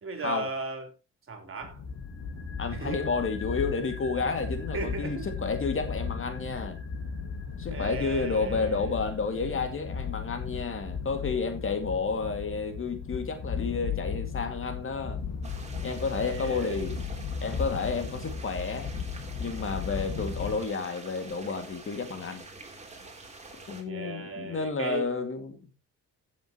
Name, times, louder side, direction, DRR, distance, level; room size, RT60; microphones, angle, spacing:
voice 1, 0.0-0.9 1.3-1.8 2.7-3.0 4.7-5.3 7.7-8.9 16.1-16.9 23.9-25.1, right 4 dB, 45° right, 3.5 m, -36 dB
sound 1, 1.6-20.6, left 6 dB, 60° left, 2.0 m, -36 dB
sound 2, 1.9-12.1 12.4-12.5, left 2 dB, 10° left, 6.7 m, -47 dB
voice 2, 2.6-6.8 7.6-15.2 15.8-17.0 17.4-18.9 19.4-22.4 23.7-25.6, left 4 dB, 45° left, 2.3 m, -31 dB
sound 3, 15.4-23.8, right 3 dB, 20° right, 3.3 m, -47 dB
15.5 x 7.4 x 3.0 m
cardioid pair, 90°, 30 cm